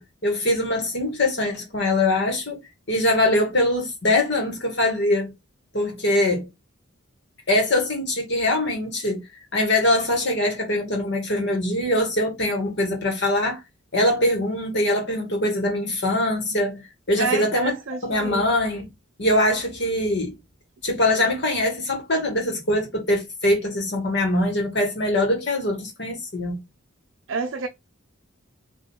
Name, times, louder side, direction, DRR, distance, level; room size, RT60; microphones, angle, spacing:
voice 1, 0.0-2.6 2.9-5.3 5.7-6.5 7.5-9.2 9.5-13.6 13.9-16.8 17.1-17.7 18.0-18.8 19.2-20.3 20.8-26.6, left 1 dB, 55° left, 1.9 m, -23 dB
voice 2, 17.2-18.4 27.3-27.7, right 5 dB, 70° right, 0.4 m, -29 dB
3.8 x 3.0 x 4.4 m
head